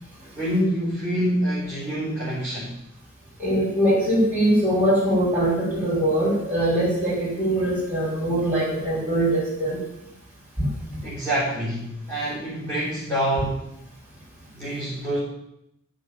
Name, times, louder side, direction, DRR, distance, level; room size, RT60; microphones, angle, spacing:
voice 1, 0.3-2.7 11.0-13.7 14.5-15.2, right 1 dB, 10° left, -8 dB, 4.5 m, -26 dB
voice 2, 3.4-9.8 10.6-10.7, right 1 dB, 5° right, -8 dB, 5.2 m, -22 dB
15.0 x 6.2 x 9.8 m, 0.81 s
head